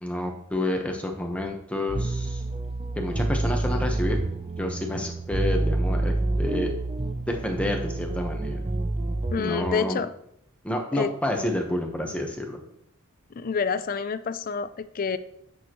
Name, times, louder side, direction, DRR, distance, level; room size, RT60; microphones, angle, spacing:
voice 1, 0.0-2.4 3.0-4.2 4.6-6.7 7.3-8.6 9.4-10.0 10.6-12.6, left 1 dB, 5° left, 2 dB, 1.0 m, -29 dB
sound 1, 1.9-9.7, right 2 dB, 25° right, 0.4 m, -28 dB
voice 2, 9.3-10.1 10.9-11.1 13.3-15.2, left 5 dB, 40° left, 13 dB, 0.4 m, -28 dB
9.1 x 6.4 x 3.0 m, 0.72 s
head